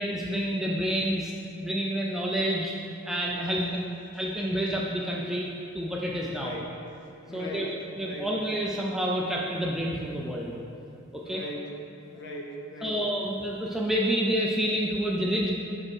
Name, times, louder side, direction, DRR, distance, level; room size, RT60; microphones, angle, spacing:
voice 1, 0.0-1.3 1.6-2.7 3.1-3.6 4.2-5.5 5.7-6.6 7.3-7.7 8.0-10.6 11.1-11.4 12.8-15.5, equal, ahead, -3 dB, 0.4 m, -28 dB
voice 2, 3.3-3.9 6.3-6.8 7.3-7.7 8.0-8.3 11.2-11.7 12.1-13.0, left 1 dB, 50° left, 0 dB, 0.8 m, -37 dB
5.0 x 4.7 x 6.2 m, 2.6 s
head